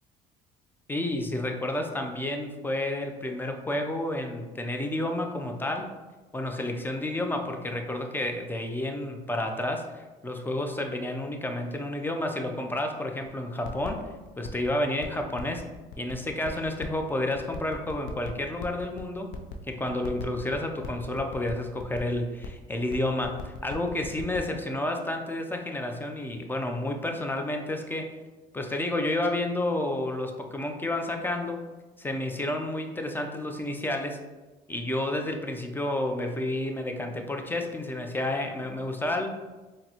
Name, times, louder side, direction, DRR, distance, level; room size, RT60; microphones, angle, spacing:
voice 1, 0.9-5.9 6.3-9.9 10.2-14.1 14.4-15.6 16.0-19.3 19.7-28.1 28.5-31.6 32.0-34.2 34.7-39.3, left 1 dB, 10° left, 4 dB, 0.4 m, -30 dB
sound 1, 13.3-13.4 13.6-14.7 15.0-17.0 17.4-19.5 19.9-22.1 22.4-22.5 22.8-24.4, left 10 dB, 75° left, 0.4 m, -40 dB
3.9 x 2.1 x 2.8 m, 1.2 s
supercardioid pair, 80°, 19 cm